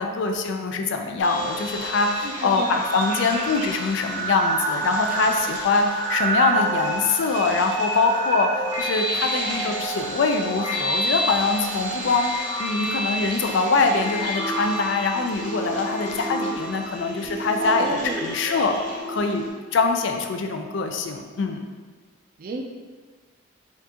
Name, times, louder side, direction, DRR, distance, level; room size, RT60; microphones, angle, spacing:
voice 1, 0.0-12.3 12.6-18.8 19.1-19.5 19.7-21.7, left 4 dB, 60° left, 5 dB, 0.3 m, -23 dB
sound 1, 1.2-19.5, right 1 dB, 35° left, 0.9 m, -29 dB
sound 2, 1.8-11.2 11.5-11.6 11.8-19.0, right 2 dB, 70° right, 1.0 m, -39 dB
voice 2, 2.2-2.8 5.1-5.5 9.5-9.8 16.0-16.4 17.6-18.3 22.4-22.8, right 2 dB, 45° right, 3 dB, 0.4 m, -33 dB
4.3 x 2.5 x 2.8 m, 1.5 s
head